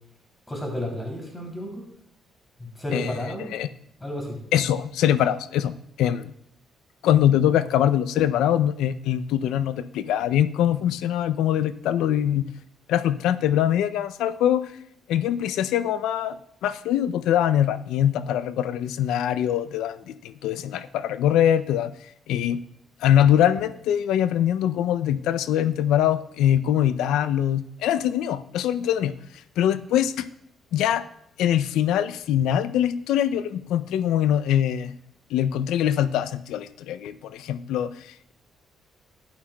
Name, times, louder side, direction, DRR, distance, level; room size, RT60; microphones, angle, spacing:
voice 1, 0.5-1.8 2.6-3.5 4.0-4.4, left 1 dB, 15° left, 0 dB, 2.9 m, -32 dB
voice 2, 2.9-3.7 4.5-5.7 6.0-6.3 7.0-12.5 12.9-14.7 15.1-16.4 16.6-21.9 22.3-22.6 23.0-29.1 29.6-30.3 30.7-31.0 31.4-34.9 35.3-38.3, left 10 dB, 90° left, 14 dB, 0.4 m, -23 dB
11.5 x 8.7 x 2.2 m, 0.73 s
cardioid pair, 90°, 0 cm